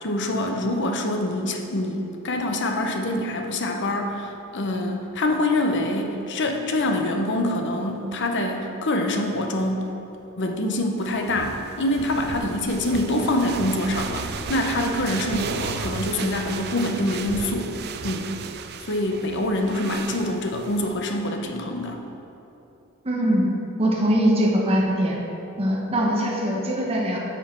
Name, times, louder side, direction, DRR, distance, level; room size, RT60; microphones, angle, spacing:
voice 1, 0.0-9.9 10.4-17.7 18.0-18.3 18.8-22.0, left 1 dB, 55° left, 3 dB, 0.8 m, -25 dB
sound 1, 11.0-21.0, right 5 dB, 50° right, 0.4 m, -34 dB
voice 2, 23.0-23.5 23.8-25.2 25.6-27.2, equal, 30° right, -3 dB, 1.1 m, -22 dB
10.0 x 6.3 x 4.5 m, 3.0 s
head